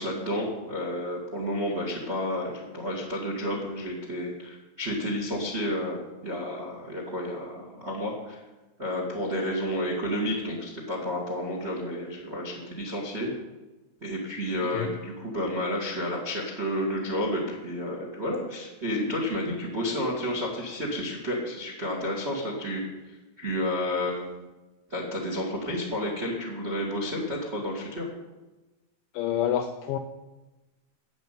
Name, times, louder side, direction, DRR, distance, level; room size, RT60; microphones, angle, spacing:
voice 1, 0.0-8.4 8.8-13.3 14.0-24.4 24.9-28.1, left 1 dB, 45° right, -1 dB, 0.8 m, -31 dB
voice 2, 14.6-14.9 29.1-30.0, left 10 dB, 85° left, 6 dB, 2.2 m, -28 dB
11.0 x 7.3 x 9.1 m, 1.1 s
omnidirectional pair, 5.0 m